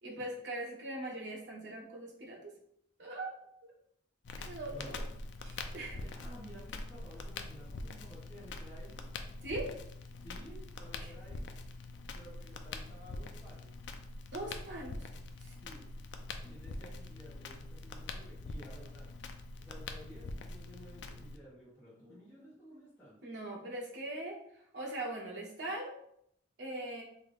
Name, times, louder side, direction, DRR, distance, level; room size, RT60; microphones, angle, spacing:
voice 1, 0.0-2.5 3.0-3.3 4.4-5.0 5.4-6.0 9.4-9.7 11.0-11.1 14.3-15.0 15.4-15.5 23.2-24.4 24.7-25.9 26.6-27.0, right 1 dB, 60° right, -2 dB, 0.9 m, -41 dB
Crackle, 4.2-21.4, left 2 dB, 65° left, 0.4 m, -44 dB
voice 2, 4.7-5.0 6.0-9.0 10.2-11.5 12.1-13.7 15.6-15.9 16.4-19.1 19.6-23.2, equal, 10° left, -12 dB, 1.0 m, -53 dB
3.7 x 2.6 x 3.3 m, 0.73 s
head